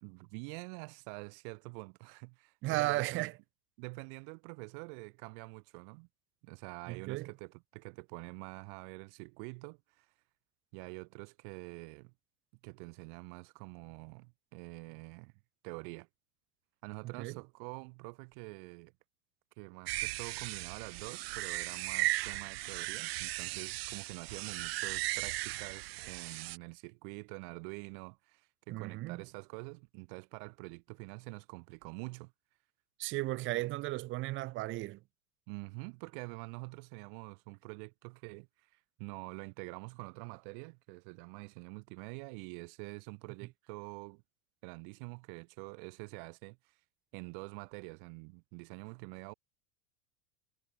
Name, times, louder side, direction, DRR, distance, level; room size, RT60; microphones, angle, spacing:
voice 1, 0.0-3.3 3.8-6.1 6.4-10.1 10.7-12.1 12.6-15.3 15.6-16.1 16.8-18.9 19.6-32.3 33.5-33.6 35.5-44.2 44.6-46.6 47.1-49.3, right 37 dB, 60° right, 2.3 m, -46 dB
voice 2, 2.6-3.3 6.9-7.3 17.1-17.3 28.7-29.2 33.0-35.0, right 19 dB, 40° right, 1.7 m, -35 dB
sound 1, 19.9-26.6, right 19 dB, 85° right, 0.9 m, -37 dB
supercardioid pair, 150°, 30 cm